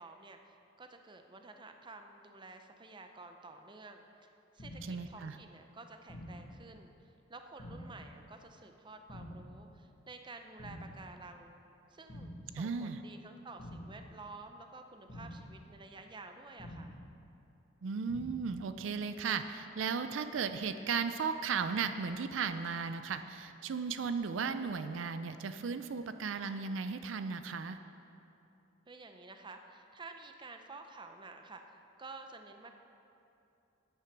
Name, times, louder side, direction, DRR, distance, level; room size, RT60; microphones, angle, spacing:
voice 1, 0.0-4.3 4.5-11.6 11.9-17.0 28.9-32.7, right 3 dB, 25° right, 6 dB, 0.6 m, -51 dB
sound 1, 4.6-5.1 6.1-6.6 7.6-8.1 9.1-9.6 10.6-11.1 12.1-12.6 13.6-14.1 15.1-15.6 16.6-17.1 18.1-18.6, equal, 40° left, 1.9 m, -47 dB
voice 2, 4.8-5.4 12.5-13.0 17.8-27.8, right 5 dB, 70° right, 10 dB, 0.4 m, -36 dB
9.3 x 8.7 x 6.0 m, 2.8 s
head